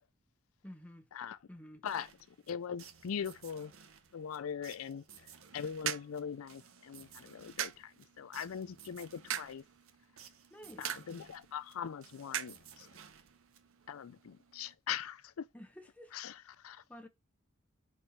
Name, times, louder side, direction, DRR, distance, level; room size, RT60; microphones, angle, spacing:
voice 1, 0.6-1.1 1.5-1.9 10.5-11.0 15.5-16.2 16.9-17.1, equal, 5° left, 0.9 m, -51 dB
sound 1, 1.9-14.0, right 7 dB, 90° right, 1.0 m, -58 dB
voice 2, 2.5-3.7 4.1-5.0 5.5-7.9 8.2-9.6 10.8-12.9 13.9-15.4 16.1-16.8, left 7 dB, 90° left, 0.4 m, -41 dB
sound 2, 5.3-14.8, right 10 dB, 70° right, 0.5 m, -45 dB
4.5 x 4.3 x 5.0 m
head